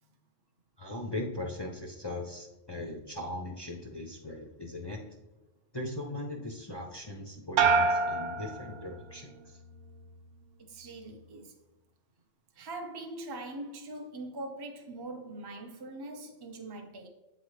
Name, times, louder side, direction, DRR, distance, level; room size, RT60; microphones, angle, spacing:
voice 1, 0.8-5.2 5.7-9.6, left 1 dB, 30° left, 0.5 m, -39 dB
sound 1, 7.6-9.3 9.7-10.3, right 4 dB, 80° right, 1.0 m, -28 dB
voice 2, 10.6-11.5 12.5-17.1, right 2 dB, 25° right, 0.5 m, -42 dB
8.2 x 4.0 x 3.2 m
omnidirectional pair, 1.3 m